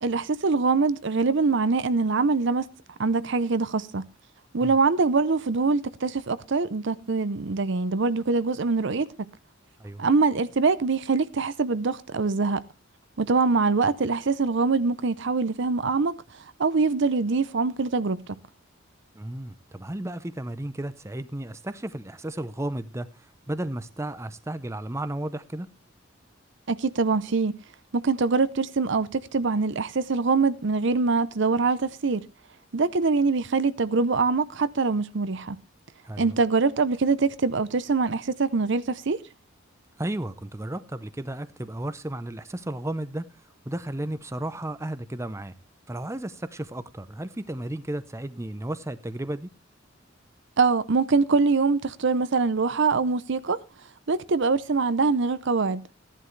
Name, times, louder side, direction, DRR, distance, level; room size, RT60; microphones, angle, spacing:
voice 1, 0.0-2.7 3.0-4.1 4.5-9.3 10.0-12.6 13.2-16.2 16.6-18.2 26.7-27.6 27.9-32.2 32.7-35.6 36.2-39.2 50.6-53.6 54.1-55.8, right 4 dB, 65° right, 0.7 m, -24 dB
voice 2, 19.1-23.1 23.5-25.7 36.0-36.4 40.0-43.2 43.7-45.5 45.9-49.5, right 1 dB, 15° right, 0.6 m, -33 dB
15.0 x 11.0 x 3.2 m
head